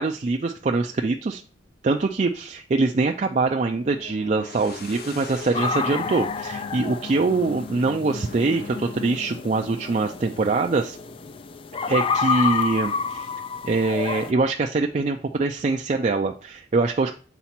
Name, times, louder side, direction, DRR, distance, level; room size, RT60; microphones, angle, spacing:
voice 1, 0.0-1.4 1.8-11.0 11.9-13.3 13.6-17.1, right 3 dB, 40° right, 3 dB, 0.4 m, -23 dB
sound 1, 1.5-1.6 3.6-11.9, left 4 dB, 55° left, 0.8 m, -40 dB
sound 2, 5.5-14.3, left 5 dB, 30° left, 0.3 m, -29 dB
7.1 x 4.0 x 4.3 m, 0.38 s
head